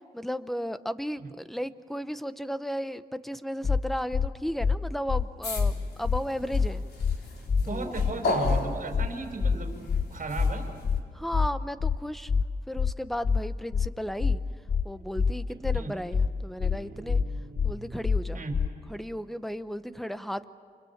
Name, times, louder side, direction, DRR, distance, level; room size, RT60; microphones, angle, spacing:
voice 1, 0.1-6.8 7.6-7.9 11.1-12.3 12.7-14.4 14.8-17.2 17.6-18.4 18.9-20.4, equal, ahead, 12 dB, 0.9 m, -34 dB
sound 1, 3.6-3.8 4.1-4.3 4.6-4.8 5.1-5.2 5.6-5.7 6.0-6.2 6.5-6.7 7.0-7.2 7.5-7.6 8.0-8.1 8.4-8.6 8.9-9.1 9.4-9.6 9.9-10.0 10.4-10.5 10.8-11.0 11.3-11.5 11.8-12.0 12.3-12.4 12.8-12.9 13.2-13.4 13.7-13.9 14.2-14.4 14.7-14.8 15.2-15.3 15.6-15.8 16.1-16.3 16.6-16.8 17.1-17.2 17.6-17.7 18.0-18.2 18.5-18.7, left 5 dB, 35° left, 0.7 m, -25 dB
sound 2, 5.4-11.0, left 2 dB, 75° left, 3.8 m, -36 dB
voice 2, 7.6-9.9 10.1-10.7 15.7-15.9 18.3-18.6, right 3 dB, 55° right, 3 dB, 5.3 m, -35 dB
Guitar, 9.8-13.3 14.9-15.2 15.5-18.4, right 3 dB, 80° right, 3.0 m, -51 dB
29.0 x 28.0 x 7.3 m, 2.2 s
wide cardioid pair, 120°, 17 cm